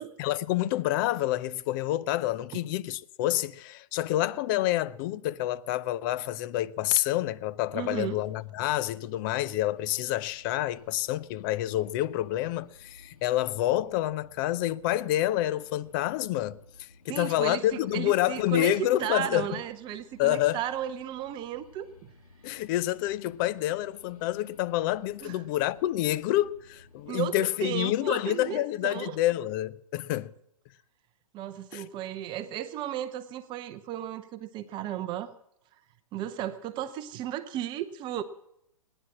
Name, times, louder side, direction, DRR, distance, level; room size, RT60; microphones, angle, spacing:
voice 1, 0.2-19.6 20.2-20.6 22.4-30.3 31.7-31.8, left 14 dB, 35° left, 0.6 m, -28 dB
voice 2, 7.7-8.2 17.1-17.6 17.9-18.7 19.0-21.9 25.2-25.3 27.1-29.2 31.3-35.3 36.1-38.2, right 11 dB, 25° right, 0.8 m, -34 dB
sound 1, 9.7-27.1, left 3 dB, 80° left, 2.5 m, -57 dB
19.0 x 10.0 x 7.4 m
figure-of-eight pair, 120°, 18 cm